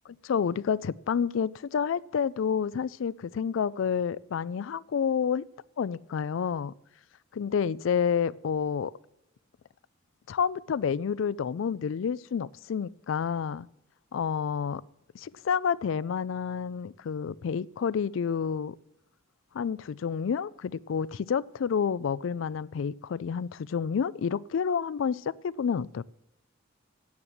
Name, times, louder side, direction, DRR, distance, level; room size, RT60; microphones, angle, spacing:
voice 1, 0.1-5.4 5.8-6.7 7.3-8.9 10.3-13.7 14.1-14.8 15.1-18.8 19.5-26.0, left 7 dB, 70° left, 0.4 m, -29 dB
11.0 x 9.6 x 7.3 m
head